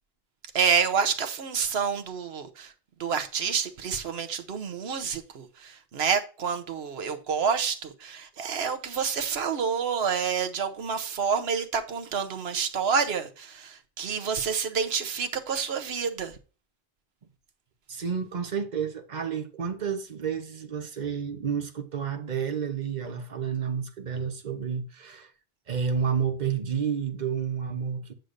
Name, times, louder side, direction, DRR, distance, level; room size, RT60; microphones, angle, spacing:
voice 1, 0.5-2.7 3.0-16.3, right 6 dB, 80° right, 1.1 m, -28 dB
voice 2, 17.9-25.3 25.7-28.1, right 7 dB, 45° right, 1.0 m, -30 dB
9.1 x 6.5 x 2.6 m
omnidirectional pair, 1.1 m